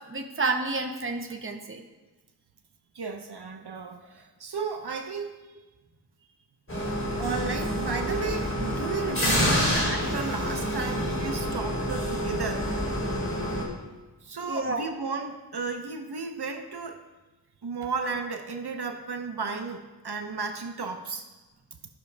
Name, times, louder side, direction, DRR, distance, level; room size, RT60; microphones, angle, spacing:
voice 1, 0.0-1.8 14.5-14.9, right 3 dB, 30° right, 4 dB, 0.9 m, -30 dB
voice 2, 2.9-5.3 7.2-12.7 14.2-17.0 17.6-21.3, right 4 dB, 70° right, 5 dB, 0.9 m, -34 dB
sound 1, 6.7-13.6, equal, 30° left, 3.2 m, -28 dB
14.5 x 6.0 x 3.4 m, 1.2 s
wide cardioid pair, 60°, 41 cm